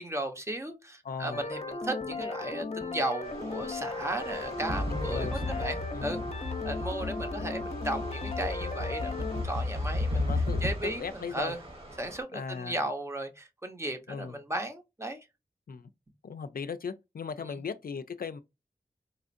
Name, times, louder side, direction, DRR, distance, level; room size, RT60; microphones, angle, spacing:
voice 1, 0.0-6.2 6.6-10.3 10.6-11.6 12.0-15.3, right 1 dB, 15° right, 0.8 m, -35 dB
voice 2, 1.0-1.4 4.9-6.2 10.1-11.5 12.3-12.8 14.1-14.4 15.7-15.8 16.2-18.4, left 5 dB, 70° left, 0.4 m, -38 dB
sound 1, 1.3-9.4, left 3 dB, 45° left, 0.7 m, -36 dB
sound 2, 3.2-12.2, right 1 dB, 40° right, 1.3 m, -47 dB
sound 3, 4.7-11.1, left 2 dB, 70° right, 1.5 m, -33 dB
4.2 x 2.4 x 2.5 m
wide cardioid pair, 45°, 16 cm